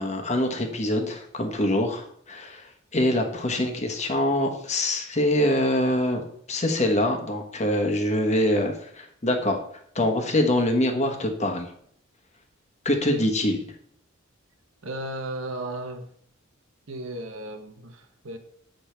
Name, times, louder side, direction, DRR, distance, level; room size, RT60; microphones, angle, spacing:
voice 1, 0.0-6.2 6.5-9.6 9.9-11.7 12.8-13.6, left 1 dB, 35° left, 3 dB, 1.2 m, -24 dB
voice 2, 14.8-16.1 16.9-18.4, right 2 dB, 70° right, 6 dB, 1.1 m, -35 dB
7.9 x 5.1 x 4.5 m, 0.65 s
head